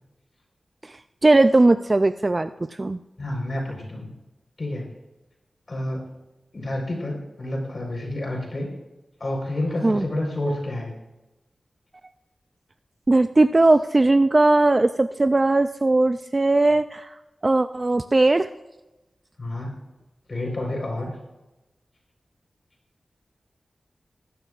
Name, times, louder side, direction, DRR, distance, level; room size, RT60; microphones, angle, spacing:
voice 1, 1.2-2.5 2.8-3.0 9.8-10.1 13.1-17.1 17.4-18.5, right 2 dB, 35° right, 10 dB, 0.4 m, -18 dB
voice 2, 3.2-4.1 4.6-4.8 5.7-6.0 6.5-8.7 9.2-10.9 19.4-19.7 20.3-21.1, left 1 dB, 50° left, 1 dB, 4.4 m, -29 dB
18.5 x 16.0 x 2.5 m, 1.0 s
wide cardioid pair, 65°, 0 cm